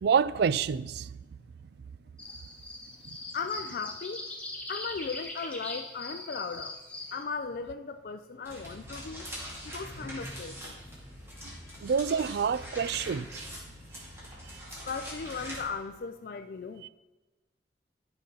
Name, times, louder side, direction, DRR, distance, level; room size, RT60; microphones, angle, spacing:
voice 1, 0.0-1.1 11.4-11.5 11.8-13.5, right 6 dB, 60° right, 0.3 m, -27 dB
sound 1, 2.2-7.2, left 2 dB, 5° left, 1.1 m, -41 dB
voice 2, 3.3-4.2 4.7-6.8 7.1-9.3 9.6-10.8 11.3-11.8 14.8-16.8, left 5 dB, 50° left, 0.4 m, -37 dB
sound 2, 8.4-15.6, equal, 15° right, 2.3 m, -43 dB
12.5 x 5.3 x 3.9 m
head